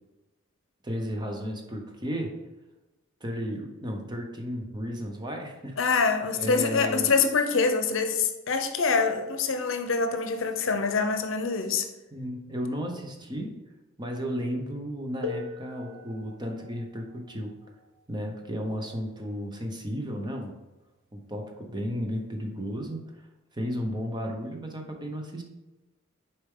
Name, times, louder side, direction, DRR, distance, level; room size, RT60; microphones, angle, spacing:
voice 1, 0.8-2.4 3.2-5.8 6.3-7.1 12.1-13.5 14.0-17.5 18.1-20.6 21.1-23.0 23.5-25.4, equal, 20° right, 3 dB, 0.9 m, -33 dB
voice 2, 5.8-11.9, left 4 dB, 70° left, 7 dB, 0.7 m, -25 dB
sound 1, 15.2-20.7 21.7-21.8 22.6-22.9, left 4 dB, 65° right, 1.1 m, -43 dB
6.6 x 4.5 x 3.7 m, 1.1 s
head